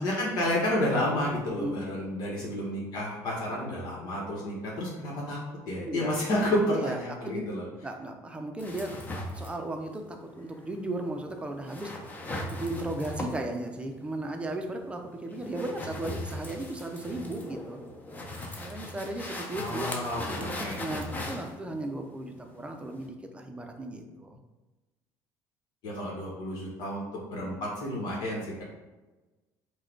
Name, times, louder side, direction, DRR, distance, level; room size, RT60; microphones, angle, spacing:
voice 1, 0.0-5.4 5.7-7.6 19.5-20.8 25.8-27.0 27.3-28.6, left 1 dB, 65° left, -4 dB, 1.3 m, -30 dB
voice 2, 6.7-7.4 7.8-8.9 9.3-17.8 18.6-19.9 20.3-24.4, right 2 dB, 15° right, 4 dB, 0.6 m, -36 dB
sound 1, 8.6-23.1, left 1 dB, 20° left, 0.7 m, -39 dB
4.8 x 2.3 x 4.5 m, 1.1 s
cardioid pair, 115°, 8 cm